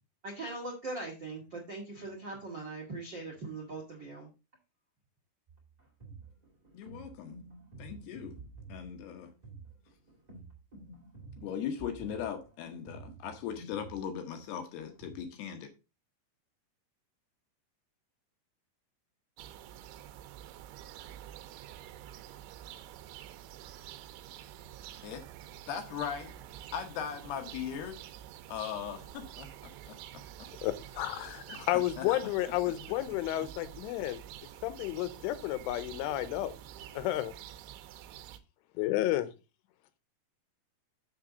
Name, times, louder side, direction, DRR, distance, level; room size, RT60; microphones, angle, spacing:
voice 1, 0.2-4.3, right 2 dB, 55° right, 1.2 m, -40 dB
sound 1, 5.5-15.2, right 3 dB, 25° right, 0.9 m, -50 dB
voice 2, 6.7-7.4 7.8-8.4 8.7-9.3 11.4-15.7 25.0-25.2 25.7-26.3 26.7-28.0 28.5-30.5 31.2-31.7 32.0-32.2, left 8 dB, 75° left, 2.7 m, -39 dB
sound 2, 19.4-38.4, right 12 dB, 80° right, 3.0 m, -48 dB
voice 3, 30.6-34.2 34.6-36.5 36.9-37.3 38.8-39.3, left 14 dB, 90° left, 3.3 m, -31 dB
7.3 x 6.8 x 3.8 m
omnidirectional pair, 5.5 m